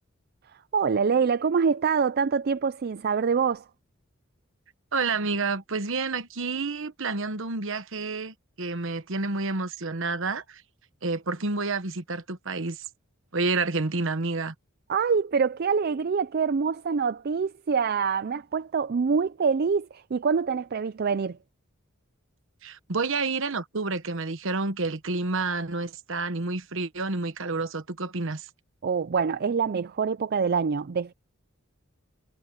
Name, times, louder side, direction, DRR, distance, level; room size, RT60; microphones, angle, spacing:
voice 1, 0.7-3.6 14.9-21.4 28.8-31.1, right 5 dB, 50° right, 0.4 m, -25 dB
voice 2, 4.9-10.6 11.0-12.8 13.3-14.5 22.6-28.5, right 3 dB, 65° right, 1.2 m, -29 dB
head